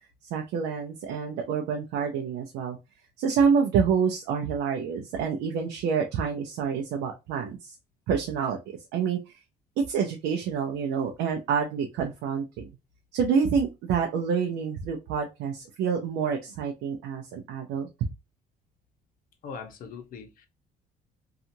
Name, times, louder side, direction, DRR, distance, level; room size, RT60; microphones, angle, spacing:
voice 1, 0.3-2.8 3.2-7.7 8.1-8.6 8.9-9.3 9.9-12.7 13.1-17.9, right 6 dB, 80° right, 0.5 m, -27 dB
voice 2, 19.4-20.5, left 5 dB, 55° left, 0.7 m, -41 dB
2.8 x 2.4 x 2.6 m
cardioid pair, 110°, 17 cm